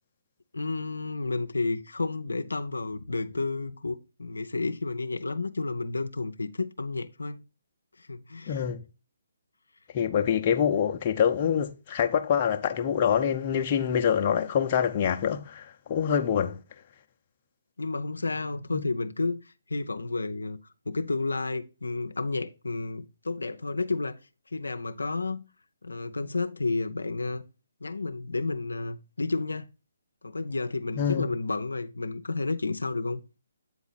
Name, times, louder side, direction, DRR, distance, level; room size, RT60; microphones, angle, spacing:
voice 1, 0.5-7.4 8.0-8.6 17.8-20.6 20.9-24.2 24.5-25.4 25.8-27.4 27.8-29.7 30.2-33.2, left 3 dB, 90° left, 0.6 m, -31 dB
voice 2, 8.5-8.8 9.9-16.6 18.7-18.8 31.0-31.3, left 8 dB, 35° left, 0.7 m, -25 dB
8.1 x 4.0 x 4.1 m
hypercardioid pair, 145°, 0 cm